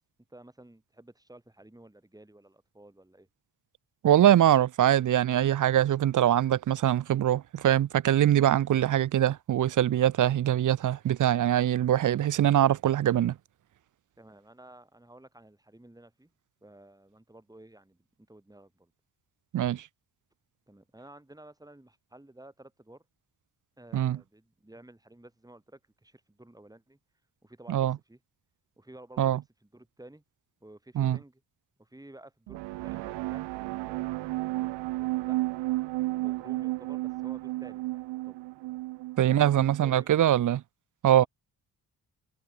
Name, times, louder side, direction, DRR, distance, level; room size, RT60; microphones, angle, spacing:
voice 1, 0.3-3.3 14.2-16.3 16.6-18.9 20.7-23.0 23.8-27.0 27.4-28.2 28.8-29.4 29.7-30.2 30.6-31.4 31.8-33.5 35.0-35.4 36.2-38.4 39.3-39.5 39.8-40.1 41.2-41.3, right 1 dB, 10° right, 4.0 m, -52 dB
voice 2, 4.0-13.4 19.5-19.9 23.9-24.2 27.7-28.0 29.2-29.4 31.0-31.2 39.2-40.6 41.0-41.2, right 11 dB, 50° right, 0.6 m, -23 dB
sound 1, 32.5-40.0, right 20 dB, 90° right, 0.9 m, -33 dB
supercardioid pair, 55°, 41 cm